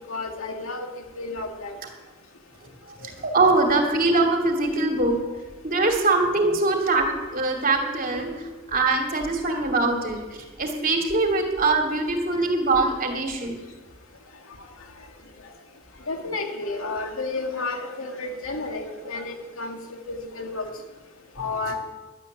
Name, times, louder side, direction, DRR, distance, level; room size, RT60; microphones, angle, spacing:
voice 1, 0.1-0.9 1.2-1.7 16.1-19.8 20.1-20.6 21.4-21.7, left 3 dB, 90° left, 2.3 m, -31 dB
voice 2, 3.2-5.1 5.6-8.3 8.7-13.5, right 3 dB, 45° right, 2.6 m, -22 dB
12.0 x 9.0 x 9.2 m
head